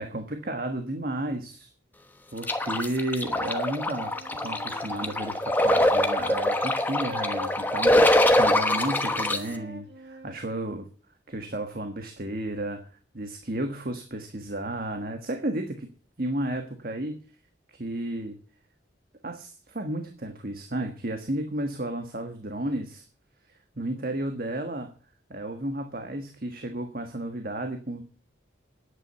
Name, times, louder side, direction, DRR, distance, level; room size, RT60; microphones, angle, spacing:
voice 1, 0.0-1.7 2.3-4.1 4.4-10.9 11.3-12.8 13.1-15.9 16.2-17.2 17.7-18.4 19.2-23.0 23.8-24.9 25.3-28.0, right 1 dB, 50° right, 5 dB, 1.4 m, -32 dB
sound 1, 2.4-9.4, left 1 dB, 10° left, 1.0 m, -23 dB
Wind instrument woodwind instrument, 3.9-6.8 7.1-10.4, equal, 65° right, 2.2 m, -43 dB
10.0 x 8.5 x 8.1 m, 0.40 s
head